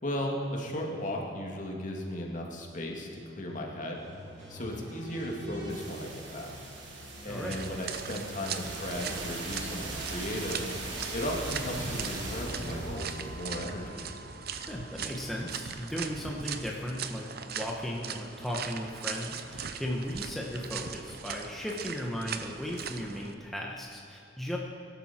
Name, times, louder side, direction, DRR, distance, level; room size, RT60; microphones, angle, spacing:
voice 1, 0.0-4.0 4.5-6.5 7.2-10.6 11.1-14.1, left 1 dB, 40° left, 0 dB, 2.4 m, -36 dB
sound 1, 3.9-15.8, right 2 dB, 75° right, 3.0 m, -41 dB
voice 2, 7.3-7.6 14.7-24.6, equal, ahead, -2 dB, 1.2 m, -36 dB
sound 2, 7.5-23.3, right 6 dB, 55° right, 0.8 m, -40 dB
22.0 x 12.0 x 4.5 m, 2.8 s
head